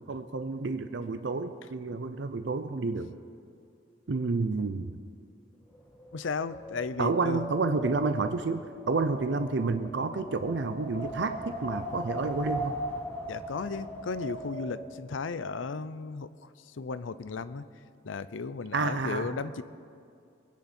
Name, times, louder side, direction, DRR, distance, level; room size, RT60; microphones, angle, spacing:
voice 1, 0.0-3.1 4.1-5.0 7.0-12.8 18.7-19.3, right 3 dB, 70° right, 9 dB, 0.5 m, -30 dB
Wind, 5.7-14.9, equal, 10° left, 2.6 m, -39 dB
voice 2, 6.1-7.4 13.3-17.6 18.0-19.6, left 4 dB, 90° left, 15 dB, 0.5 m, -35 dB
23.0 x 9.7 x 4.3 m, 2.4 s
head